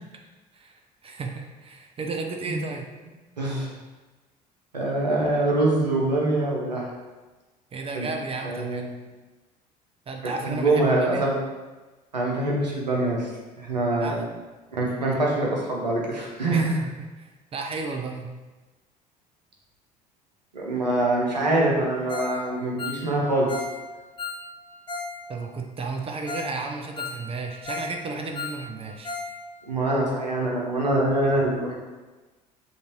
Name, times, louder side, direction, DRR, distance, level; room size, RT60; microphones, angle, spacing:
voice 1, 0.5-2.8 7.7-8.9 10.1-11.2 14.0-14.2 16.5-18.3 25.3-29.1, right 3 dB, 30° right, 3 dB, 0.5 m, -33 dB
voice 2, 3.4-3.7 4.7-6.9 7.9-8.1 8.4-8.9 10.2-11.3 12.1-13.3 13.6-14.3 14.7-16.8 20.5-23.5 29.7-31.7, right 2 dB, 85° right, -3 dB, 0.7 m, -24 dB
Ringtone, 22.1-22.4 22.6-25.2 25.4-25.5 26.0-26.1 26.3-26.5 26.8-28.0 28.2-29.3 29.6-29.7 30.1-30.2, left 4 dB, 25° left, 0.7 m, -35 dB
5.3 x 2.6 x 2.9 m, 1.2 s
figure-of-eight pair, 55°, 21 cm